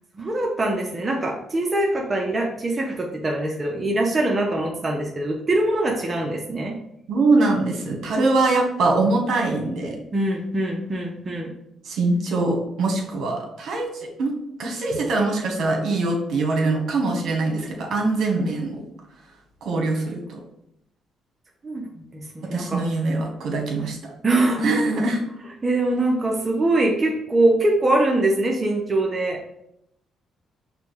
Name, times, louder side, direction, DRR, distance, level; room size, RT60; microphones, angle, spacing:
voice 1, 0.1-6.8 10.1-11.5 21.6-22.8 24.2-24.6 25.6-29.4, right 2 dB, 30° right, 0 dB, 0.7 m, -23 dB
voice 2, 7.1-10.0 11.8-14.3 14.6-18.8 19.6-20.4 22.5-24.1 24.6-25.2, right 3 dB, 70° right, 0 dB, 1.2 m, -23 dB
5.0 x 2.3 x 4.7 m, 0.78 s
cardioid pair, 90°, 0 cm